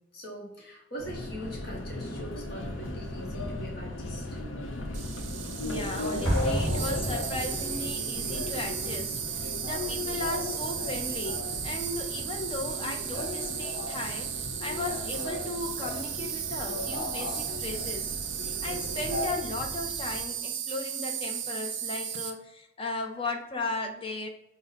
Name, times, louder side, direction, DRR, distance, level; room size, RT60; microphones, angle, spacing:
voice 1, 0.1-4.4, equal, 50° left, -2 dB, 0.9 m, -42 dB
Subway metro underground, 1.0-20.2, left 2 dB, 85° left, 0.6 m, -36 dB
Insect, 4.9-22.3, right 9 dB, 65° right, 0.5 m, -35 dB
voice 2, 5.6-18.1 18.6-24.3, left 2 dB, 25° left, 4 dB, 0.5 m, -36 dB
Explosion, 6.2-8.0, equal, 10° left, 1.4 m, -30 dB
5.4 x 2.0 x 3.9 m, 0.90 s
head